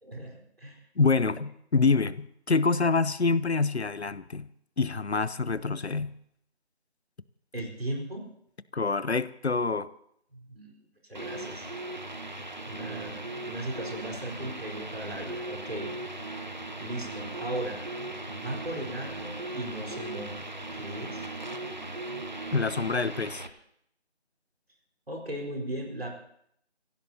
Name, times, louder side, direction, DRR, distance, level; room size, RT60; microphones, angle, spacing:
voice 1, 0.0-0.8 1.2-1.3 7.5-8.3 10.3-10.7 11.1-11.7 12.6-13.2 13.4-15.9 16.8-17.8 18.3-21.3 25.1-26.1, right 1 dB, 60° right, 0 dB, 4.5 m, -37 dB
voice 2, 1.0-4.5 4.8-6.1 8.7-9.9 22.5-23.4, left 4 dB, 70° left, 17 dB, 0.8 m, -26 dB
sound 1, 11.1-23.5, right 2 dB, 45° right, 1.1 m, -38 dB
28.0 x 16.0 x 2.9 m, 0.70 s
figure-of-eight pair, 170°, 33 cm